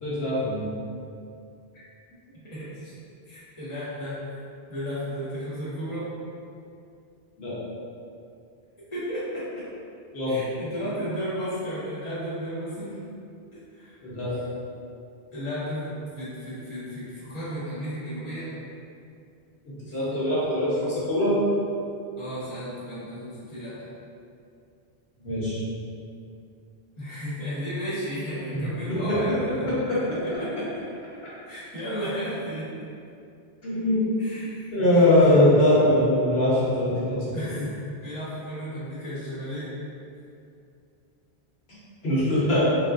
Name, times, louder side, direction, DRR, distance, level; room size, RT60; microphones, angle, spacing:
voice 1, 0.0-0.7 7.4-7.5 10.1-10.4 14.0-14.3 19.9-21.3 25.2-25.6 28.9-29.0 29.7-30.0 33.6-34.0 34.7-37.3 42.0-42.7, left 1 dB, 70° left, -10 dB, 1.1 m, -22 dB
voice 2, 2.4-2.9 3.2-4.4 4.7-6.1 8.9-9.6 10.3-13.0 13.7-14.0 14.3-14.4 15.3-18.5 19.9-20.0 22.2-23.9 27.0-30.7 31.4-32.7 34.2-35.4 37.3-37.7 38.0-39.7, equal, 30° left, -11 dB, 1.1 m, -34 dB
3.5 x 2.5 x 2.5 m, 2.5 s
omnidirectional pair, 1.1 m